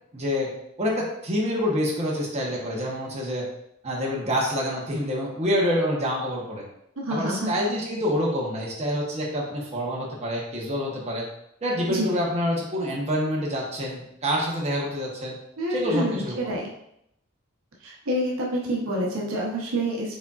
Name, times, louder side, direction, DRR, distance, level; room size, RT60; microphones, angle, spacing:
voice 1, 0.1-0.5 0.8-3.4 3.8-6.6 7.1-11.2 11.6-15.4 15.7-16.5, equal, 30° right, -3 dB, 1.0 m, -27 dB
voice 2, 7.0-7.5 11.9-12.1 15.6-16.7 17.8-20.1, equal, 70° right, -2 dB, 0.9 m, -27 dB
4.8 x 4.1 x 2.4 m, 0.78 s
head